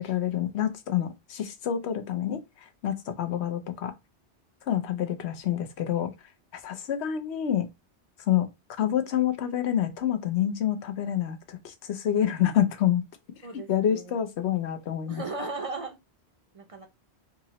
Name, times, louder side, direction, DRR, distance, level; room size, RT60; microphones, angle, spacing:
voice 1, 0.0-2.4 2.8-3.9 4.7-6.1 6.5-7.7 8.3-8.5 8.8-13.0 13.7-15.2, left 10 dB, 80° left, 1.0 m, -27 dB
voice 2, 13.4-14.2 15.1-16.0 16.5-16.9, right 3 dB, 40° right, 0.6 m, -36 dB
3.7 x 2.8 x 3.0 m
omnidirectional pair, 1.1 m